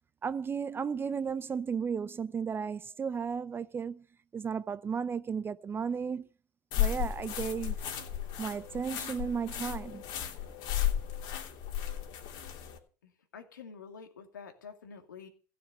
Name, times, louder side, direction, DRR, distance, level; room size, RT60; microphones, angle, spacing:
voice 1, 0.2-4.0 4.3-6.3 6.8-8.0 8.4-10.0, right 6 dB, 20° right, 0.6 m, -34 dB
sound 1, 6.7-12.8, left 10 dB, 55° left, 3.1 m, -34 dB
voice 2, 13.0-15.3, left 6 dB, 85° left, 2.6 m, -48 dB
16.0 x 6.8 x 7.9 m
hypercardioid pair, 90°, 10 cm